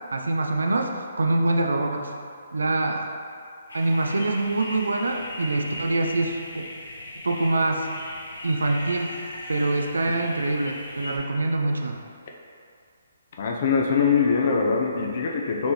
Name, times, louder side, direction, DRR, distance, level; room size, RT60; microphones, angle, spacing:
voice 1, 0.1-0.9 1.2-2.1 2.5-3.1 3.7-6.7 7.2-7.9 8.4-9.2 9.5-12.0, right 2 dB, 85° right, 3 dB, 0.4 m, -24 dB
sound 1, 3.7-11.2, left 1 dB, 80° left, 0.8 m, -38 dB
voice 2, 13.4-15.7, left 5 dB, 50° left, 0 dB, 0.5 m, -22 dB
4.2 x 3.4 x 3.0 m, 2.3 s
hypercardioid pair, 140°, 0 cm